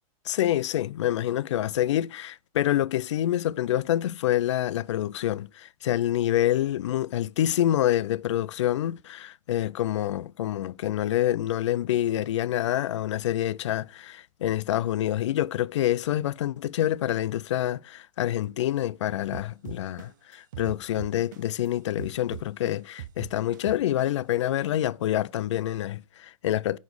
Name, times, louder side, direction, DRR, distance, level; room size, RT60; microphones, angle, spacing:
voice 1, 0.3-26.8, left 12 dB, 55° left, 0.4 m, -27 dB
sound 1, 19.3-21.7 22.0-24.3, right 12 dB, 35° right, 0.4 m, -40 dB
9.5 x 4.1 x 5.3 m
supercardioid pair, 180°, 18 cm